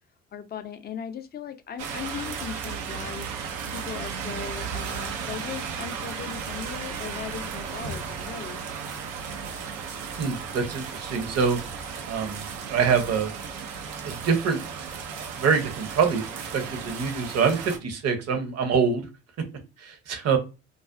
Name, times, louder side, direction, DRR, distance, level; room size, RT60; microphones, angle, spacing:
voice 1, 0.3-3.3 3.7-8.6, left 7 dB, 25° left, 0.4 m, -38 dB
sound 1, 1.8-17.8, right 6 dB, 80° right, 0.5 m, -35 dB
voice 2, 10.2-11.6 12.1-13.3 14.0-14.6 15.4-19.1 19.8-20.4, right 6 dB, 45° right, 0.8 m, -25 dB
2.4 x 2.3 x 2.3 m
hypercardioid pair, 50°, 37 cm